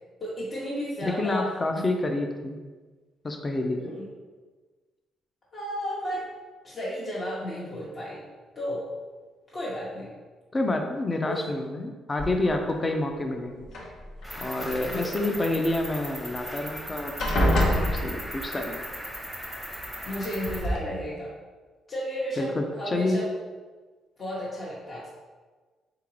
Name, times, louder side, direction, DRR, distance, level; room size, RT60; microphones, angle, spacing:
voice 1, 0.2-1.4 1.7-1.9 3.7-4.1 5.5-6.2 6.6-8.8 9.5-10.1 11.3-11.4 14.9-15.1 15.3-15.6 20.0-21.3 21.9-23.3 24.2-25.1, equal, 40° left, -8 dB, 0.9 m, -33 dB
voice 2, 1.0-2.6 3.2-3.9 10.5-13.7 14.4-19.0 22.4-23.2, left 2 dB, 25° left, 4 dB, 0.5 m, -28 dB
sound 1, 12.2-12.8 13.6-14.4 16.2-16.3 16.6-16.9 17.2-18.6 19.8-19.9 20.4-20.8, equal, 75° left, 0.9 m, -26 dB
Cricket, 14.2-20.6, equal, 5° left, 0.9 m, -38 dB
3.8 x 3.6 x 3.1 m, 1.4 s
cardioid pair, 90°, 0 cm